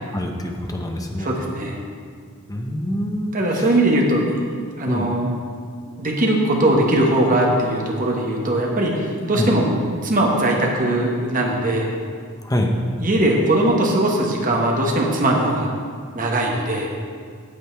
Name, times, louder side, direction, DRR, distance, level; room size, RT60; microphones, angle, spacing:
voice 1, 0.1-1.3 2.5-3.7 4.9-5.1 9.3-9.5 12.4-12.7, equal, 15° left, 2 dB, 0.8 m, -25 dB
voice 2, 1.2-1.8 3.3-4.3 4.8-5.3 5.9-9.8 10.0-11.9 13.0-15.7 16.1-16.9, right 1 dB, 40° right, -1 dB, 1.4 m, -20 dB
8.5 x 8.1 x 4.6 m, 2.1 s
head